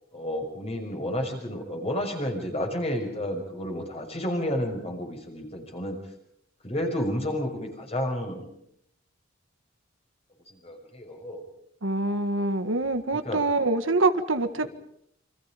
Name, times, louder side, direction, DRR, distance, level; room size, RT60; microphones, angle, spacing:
voice 1, 0.1-6.0 6.6-8.5 10.5-11.4 13.2-13.4 14.6-14.7, equal, 30° left, 3 dB, 6.0 m, -31 dB
voice 2, 11.8-14.7, right 2 dB, 75° right, 9 dB, 1.8 m, -25 dB
29.0 x 25.5 x 5.2 m, 0.71 s
head